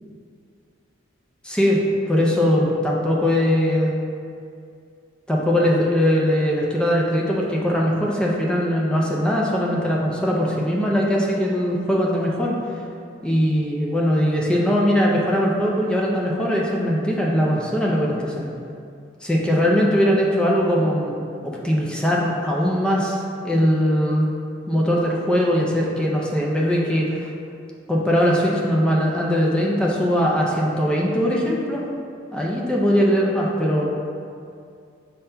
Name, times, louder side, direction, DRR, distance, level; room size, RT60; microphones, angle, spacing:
voice 1, 1.4-3.9 5.3-12.5 13.2-18.5 19.2-21.1 21.4-24.3 24.7-27.3 27.9-31.8 32.3-33.8, equal, 5° left, -3 dB, 0.4 m, -20 dB
5.2 x 4.2 x 2.2 m, 2.4 s
head